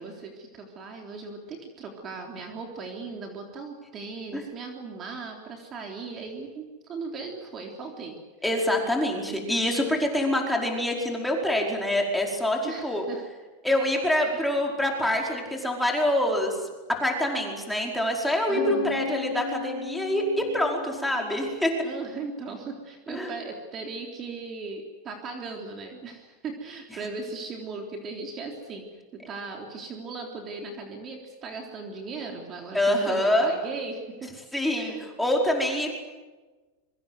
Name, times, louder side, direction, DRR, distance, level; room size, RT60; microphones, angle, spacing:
voice 1, 0.0-8.2 12.6-13.2 18.5-19.0 21.8-34.3 34.7-35.0, right 4 dB, 25° right, 2 dB, 3.6 m, -38 dB
voice 2, 8.4-13.0 13.6-16.6 17.0-21.7 23.1-23.3 32.7-33.5 34.5-35.9, left 1 dB, ahead, 0 dB, 5.0 m, -25 dB
Bass guitar, 18.6-22.2, left 8 dB, 65° left, 3.9 m, -36 dB
26.0 x 24.0 x 8.0 m, 1.3 s
supercardioid pair, 155°, 0 cm